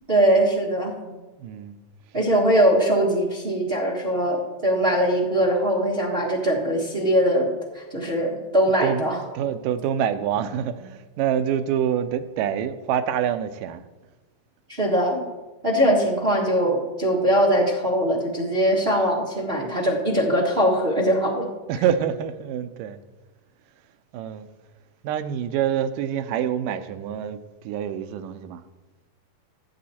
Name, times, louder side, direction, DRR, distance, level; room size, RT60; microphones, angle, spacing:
voice 1, 0.1-0.9 2.1-9.2 14.7-15.2 15.6-21.5, equal, 40° right, 0.8 m, -21 dB
voice 2, 0.8-1.8 8.8-13.8 21.7-23.0 24.1-24.5 25.0-28.6, right 9 dB, 85° right, 2.2 m, -26 dB
15.0 x 7.1 x 4.2 m
omnidirectional pair, 3.7 m